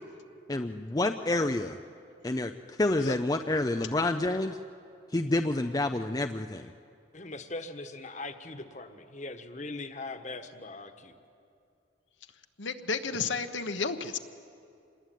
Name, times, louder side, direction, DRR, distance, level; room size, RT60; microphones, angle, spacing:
voice 1, 0.5-1.8 2.2-4.6 5.1-6.6, left 2 dB, 20° left, 6 dB, 0.5 m, -28 dB
voice 2, 7.1-11.1, left 2 dB, 40° left, 8 dB, 1.4 m, -40 dB
voice 3, 12.6-14.2, left 4 dB, 70° left, 7 dB, 1.2 m, -32 dB
26.5 x 20.5 x 9.3 m, 2.6 s
head